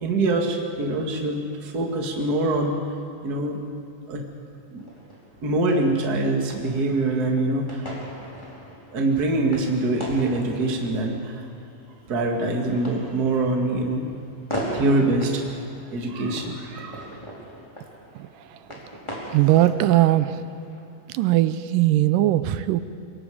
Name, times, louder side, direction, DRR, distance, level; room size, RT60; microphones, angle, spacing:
voice 1, 0.0-2.8 3.2-3.6 4.1-4.2 4.7-4.8 5.4-7.9 8.9-11.4 12.1-14.1 14.7-15.6 15.9-17.1, right 2 dB, 30° right, 1 dB, 2.0 m, -24 dB
sound 1, 4.8-20.8, equal, 10° left, 3.6 m, -39 dB
voice 2, 19.3-20.4 21.1-22.8, right 14 dB, 80° right, 12 dB, 2.1 m, -19 dB
25.5 x 22.5 x 5.0 m, 2.5 s
omnidirectional pair, 4.2 m